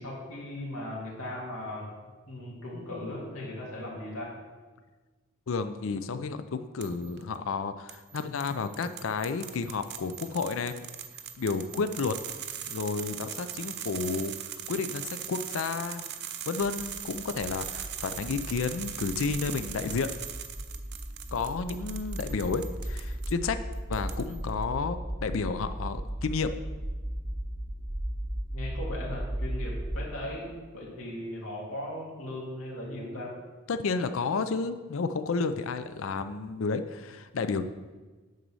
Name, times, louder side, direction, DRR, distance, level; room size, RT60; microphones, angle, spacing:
voice 1, 0.0-1.9 2.3-4.3 28.5-30.5 30.7-33.3, left 1 dB, 90° left, -4 dB, 2.6 m, -38 dB
voice 2, 5.5-10.9 11.4-12.2 12.7-14.3 14.7-16.1 16.5-20.1 21.3-23.6 23.9-26.5 33.7-37.6, left 4 dB, 70° left, 10 dB, 0.5 m, -31 dB
sound 1, 6.8-7.2 7.9-23.3 23.7-24.5, right 9 dB, 55° right, 0.6 m, -40 dB
sound 2, 16.6-30.1, right 1 dB, 5° right, 0.6 m, -36 dB
9.3 x 4.0 x 6.2 m, 1.3 s
head